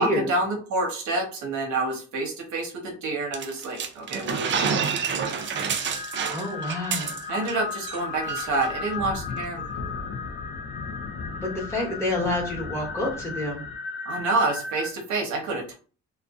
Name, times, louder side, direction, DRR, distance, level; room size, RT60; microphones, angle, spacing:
voice 1, 0.0-4.8 7.3-9.6 14.0-15.7, right 2 dB, 70° right, 1 dB, 0.9 m, -28 dB
sound 1, 3.3-7.6 7.8-8.0 8.3-8.7, right 6 dB, 40° right, 0.4 m, -28 dB
sound 2, 4.9-14.9, left 5 dB, 45° left, 0.7 m, -36 dB
voice 2, 6.3-7.1 11.3-13.6, left 1 dB, 10° left, -3 dB, 1.1 m, -28 dB
sound 3, 7.2-7.3 7.5-13.8, left 4 dB, 85° left, 0.5 m, -39 dB
2.4 x 2.2 x 2.3 m, 0.38 s
cardioid pair, 90°, 30 cm